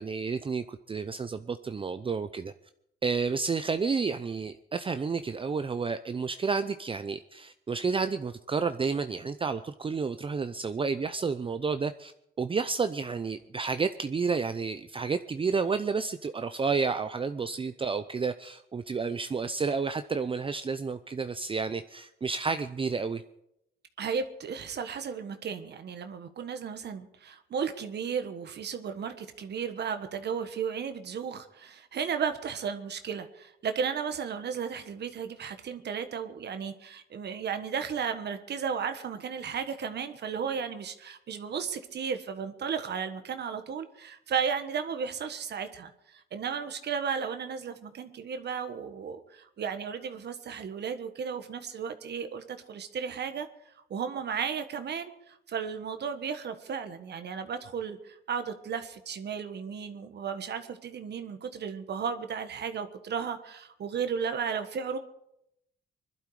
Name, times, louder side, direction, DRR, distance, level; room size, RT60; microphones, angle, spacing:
voice 1, 0.0-2.5 3.0-12.1 12.4-23.2, right 5 dB, 25° right, 10 dB, 0.6 m, -30 dB
voice 2, 24.0-53.5 53.9-65.0, right 6 dB, 60° right, 8 dB, 1.4 m, -34 dB
21.5 x 12.0 x 4.9 m, 0.79 s
cardioid pair, 90°, 20 cm